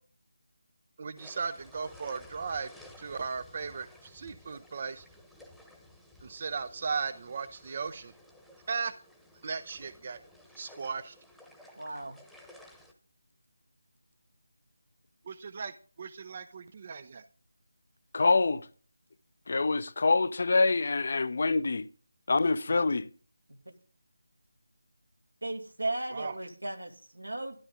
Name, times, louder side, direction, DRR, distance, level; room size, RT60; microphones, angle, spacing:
voice 1, 1.0-2.7 3.0-5.0 6.2-8.1 8.7-8.9 9.4-10.2 10.6-11.1 15.3-17.2 26.1-26.3, right 5 dB, 35° right, 0.5 m, -36 dB
sound 1, 1.1-12.9, left 1 dB, ahead, 1.1 m, -55 dB
voice 2, 11.8-12.2 23.5-23.6 25.4-27.6, right 2 dB, 85° right, 2.6 m, -36 dB
voice 3, 18.1-18.7 19.5-21.9 22.3-23.1, left 3 dB, 50° left, 0.6 m, -25 dB
12.5 x 11.0 x 3.8 m
figure-of-eight pair, 160°, 0 cm